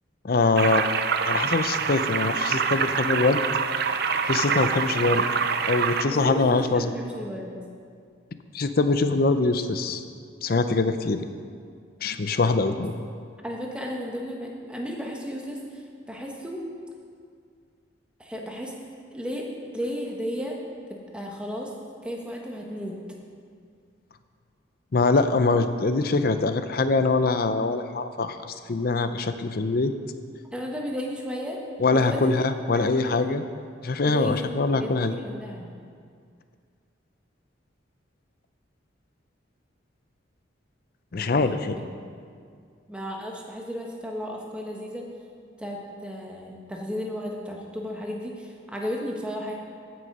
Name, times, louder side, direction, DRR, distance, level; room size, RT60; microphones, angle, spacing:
voice 1, 0.2-0.9 1.2-3.4 4.3-5.2 5.7-6.9 8.5-10.0 10.4-11.3 12.0-12.9 24.9-29.9 31.8-33.4 33.8-35.2 41.1-41.8, left 3 dB, 50° left, 10 dB, 0.5 m, -23 dB
sound 1, 0.6-6.0, right 6 dB, 55° right, 0.5 m, -25 dB
voice 2, 6.1-7.5 12.7-12.8 13.4-16.6 18.2-18.7 19.1-20.6 21.1-21.7 22.0-23.0 30.5-31.6 31.9-32.2 32.7-33.5 34.0-35.7 41.1-41.9 42.9-45.1 45.6-49.5, equal, 5° right, -1 dB, 1.2 m, -34 dB
15.0 x 6.3 x 5.4 m, 2.2 s
head